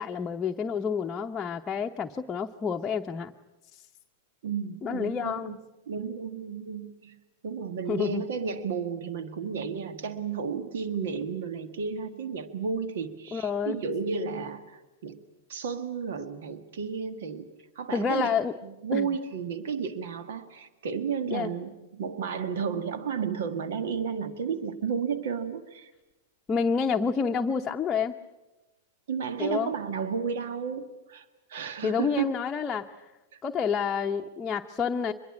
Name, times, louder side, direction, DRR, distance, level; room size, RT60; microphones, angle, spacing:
voice 1, 0.0-3.3 3.7-3.8 4.8-5.6 7.9-8.2 13.3-13.8 17.9-18.5 18.9-19.1 21.3-21.5 26.5-28.1 29.4-29.7 31.8-33.1 33.4-35.1, left 6 dB, 20° left, 3 dB, 0.9 m, -29 dB
voice 2, 4.4-5.6 5.9-15.2 15.5-17.5 17.7-18.3 18.6-25.9 29.1-32.3 33.3-33.4, right 6 dB, 65° right, 10 dB, 1.7 m, -33 dB
25.0 x 22.0 x 8.6 m, 1.1 s
hypercardioid pair, 105°, 0 cm